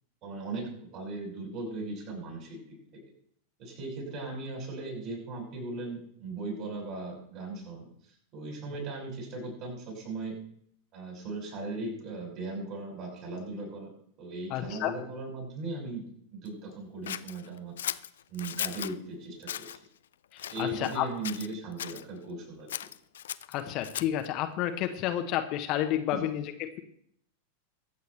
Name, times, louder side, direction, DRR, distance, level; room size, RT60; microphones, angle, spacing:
voice 1, 0.2-2.6 3.6-7.9 8.3-10.4 10.9-13.9 14.2-16.0 16.3-17.7 18.3-19.7 20.5-22.7 26.1-26.2, right 2 dB, 40° right, 0 dB, 6.1 m, -38 dB
voice 2, 14.5-14.9 20.3-21.1 23.5-26.8, left 12 dB, 40° left, 7 dB, 1.0 m, -31 dB
Scissors, 17.1-18.9 19.4-19.8 20.4-21.0 21.2-22.0 22.7-24.3, left 10 dB, 60° left, 0.4 m, -37 dB
22.5 x 8.1 x 3.3 m, 0.67 s
figure-of-eight pair, 90°, 0 cm